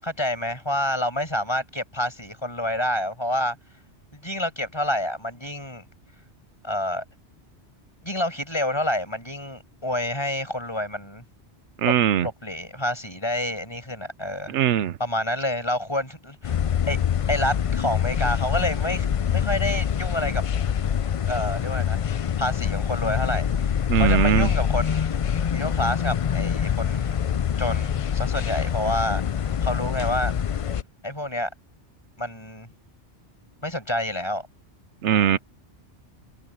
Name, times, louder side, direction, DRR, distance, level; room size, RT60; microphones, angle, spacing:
voice 1, 0.0-3.6 4.1-5.9 6.6-7.0 8.0-11.2 11.8-11.9 12.2-14.6 15.0-16.6 16.9-17.0 17.3-19.0 19.3-20.4 21.3-22.0 22.4-25.1 25.5-27.2 27.6-30.3 31.0-31.5 32.2-32.7 33.6-34.5 35.1-35.4, left 1 dB, 25° left, 6.8 m, -28 dB
voice 2, 11.8-12.3 14.5-14.9 23.9-24.5 35.0-35.4, right 9 dB, 85° right, 1.0 m, -20 dB
sound 1, 16.4-30.8, left 8 dB, 60° left, 0.3 m, -25 dB
omnidirectional pair, 1.2 m